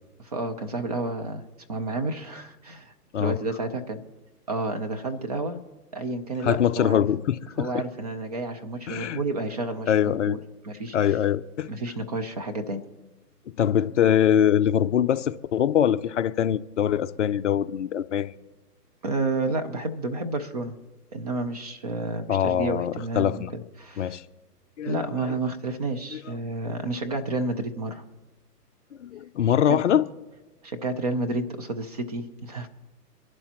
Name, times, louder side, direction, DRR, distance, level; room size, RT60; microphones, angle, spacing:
voice 1, 0.2-1.4 1.7-4.0 4.5-5.6 5.9-7.1 7.6-9.9 10.3-10.4 10.6-11.2 11.7-12.8 19.0-20.8 21.1-24.2 24.9-28.0 29.7-29.8 30.6-32.7, right 2 dB, 25° right, 0.6 m, -30 dB
voice 2, 6.4-7.8 8.9-9.2 9.9-10.4 10.9-11.7 13.6-18.3 22.3-23.5 24.0-24.2 24.8-25.1 26.1-26.4 29.0-30.0, left 9 dB, 50° left, 0.5 m, -23 dB
24.0 x 11.5 x 3.0 m
hypercardioid pair, 150°, 48 cm